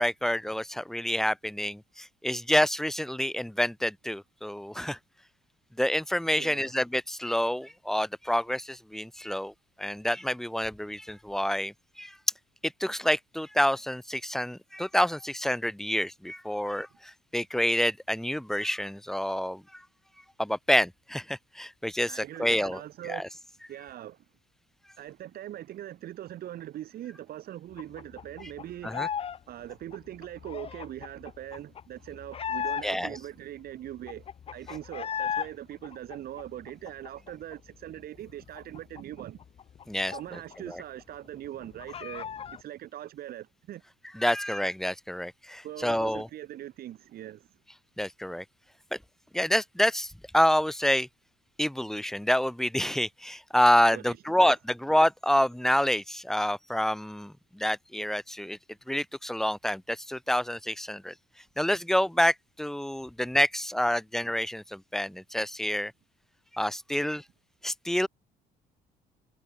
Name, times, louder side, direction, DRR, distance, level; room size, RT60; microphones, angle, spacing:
voice 1, 0.0-5.0 5.8-9.5 9.8-12.1 12.6-19.8 20.4-22.8 23.1-23.3 28.8-29.1 32.8-33.1 39.9-40.4 40.7-40.8 44.1-46.3 48.0-48.4 48.9-49.0 49.3-51.1 51.6-58.6 58.9-61.1 61.6-65.9 66.5-67.2 67.6-68.1, left 1 dB, ahead, 1.2 m, -28 dB
voice 2, 6.4-6.7 22.1-23.4 23.7-24.2 25.0-29.1 29.5-39.4 40.1-43.8 45.6-47.6 53.9-54.5, right 12 dB, 65° right, 2.5 m, -41 dB
sound 1, 27.8-29.4 29.6-33.2 33.6-33.7 33.9-35.5 35.8-37.5 37.9-38.0 38.3-40.7 41.0-41.1 41.4-42.6, left 8 dB, 35° left, 0.6 m, -36 dB
cardioid pair, 110°, 17 cm